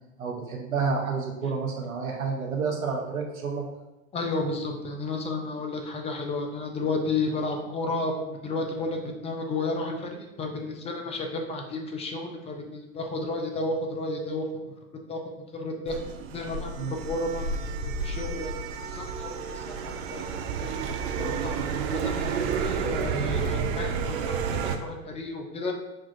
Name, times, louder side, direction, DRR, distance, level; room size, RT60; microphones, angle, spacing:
voice 1, 0.2-3.6 16.8-17.0, right 5 dB, 85° right, 0 dB, 0.8 m, -29 dB
voice 2, 4.1-14.4 15.1-15.2 15.5-16.0 16.3-16.7 17.1-18.5 18.8-20.3 20.6-20.7 21.2-21.5 21.9-25.7, left 2 dB, 15° left, 3 dB, 0.5 m, -32 dB
sound 1, 15.9-24.8, right 5 dB, 50° right, 0.5 m, -30 dB
6.3 x 2.4 x 2.6 m, 1.0 s
figure-of-eight pair, 90°, 41 cm